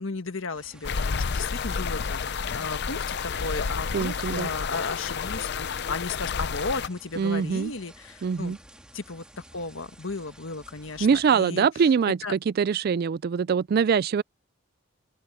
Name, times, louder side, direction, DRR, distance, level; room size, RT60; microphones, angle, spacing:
voice 1, 0.0-8.5 8.9-9.2 9.5-11.7 12.2-12.3, left 3 dB, 75° left, 1.5 m, -35 dB
sound 1, 0.5-11.4, right 1 dB, 5° right, 1.9 m, -52 dB
sound 2, 0.8-6.9, left 5 dB, 55° left, 0.6 m, -30 dB
voice 2, 3.9-4.5 7.2-7.7 8.2-8.6 11.0-14.2, right 6 dB, 50° right, 0.3 m, -23 dB
head